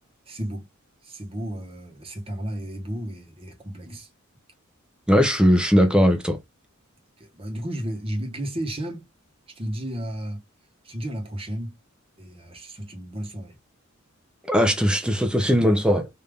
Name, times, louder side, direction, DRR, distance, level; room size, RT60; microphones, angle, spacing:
voice 1, 0.3-0.6 1.0-4.1 7.3-9.1 9.5-10.4 10.8-11.7 12.2-13.5, right 1 dB, 25° right, 1.2 m, -33 dB
voice 2, 5.1-6.4 14.5-16.1, equal, 5° right, 0.6 m, -19 dB
3.5 x 2.7 x 3.3 m
head